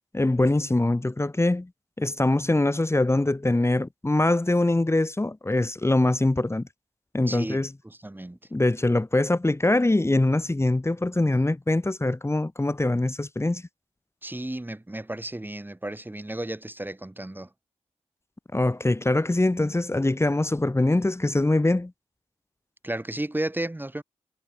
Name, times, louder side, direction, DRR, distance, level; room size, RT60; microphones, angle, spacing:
voice 1, 0.1-1.7 2.0-6.6 7.1-7.7 8.5-13.6 18.5-21.9, left 2 dB, 20° left, 1.5 m, -23 dB
voice 2, 7.3-8.4 14.2-17.5 22.8-24.0, right 1 dB, 15° right, 1.5 m, -33 dB
cardioid pair, 45°, 12 cm